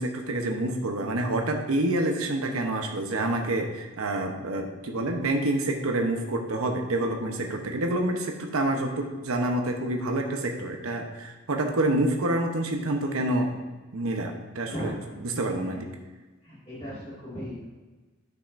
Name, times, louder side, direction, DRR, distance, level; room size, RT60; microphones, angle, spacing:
voice 1, 0.0-13.6 13.9-14.9 15.2-15.8, right 1 dB, 85° right, 3 dB, 0.9 m, -27 dB
voice 2, 14.7-15.2 15.5-15.8 16.4-17.6, equal, 30° left, -10 dB, 2.0 m, -37 dB
10.0 x 5.8 x 2.6 m, 1.2 s
head